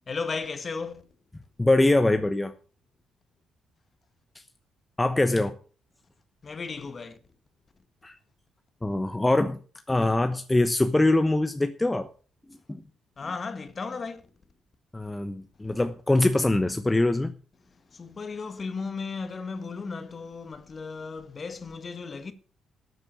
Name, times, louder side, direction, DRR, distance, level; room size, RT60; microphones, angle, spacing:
voice 1, 0.1-1.0 6.4-7.2 13.2-14.3 17.7-22.3, left 4 dB, 40° left, 1.8 m, -35 dB
voice 2, 1.6-2.5 5.0-5.5 8.0-8.1 8.8-9.6 9.9-12.1 12.5-12.8 14.9-17.3, left 2 dB, 15° left, 1.0 m, -23 dB
13.0 x 8.1 x 7.1 m
cardioid pair, 90°, 0 cm